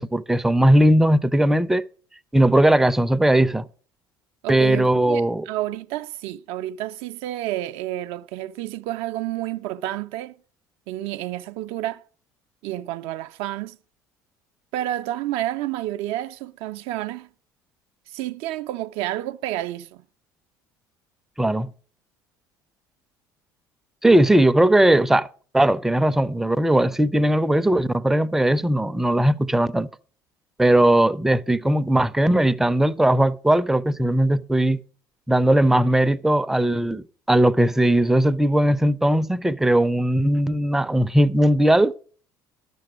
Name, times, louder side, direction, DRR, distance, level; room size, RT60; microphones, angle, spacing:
voice 1, 0.0-1.8 2.3-3.6 4.5-5.5 21.4-21.7 24.0-25.3 25.5-29.9 30.6-34.8 35.3-41.9, right 1 dB, 5° right, 0.4 m, -18 dB
voice 2, 4.4-10.3 10.9-12.0 12.6-13.8 14.7-17.3 18.1-20.0, right 14 dB, 60° right, 0.4 m, -30 dB
12.0 x 6.8 x 5.0 m
hypercardioid pair, 65°, 11 cm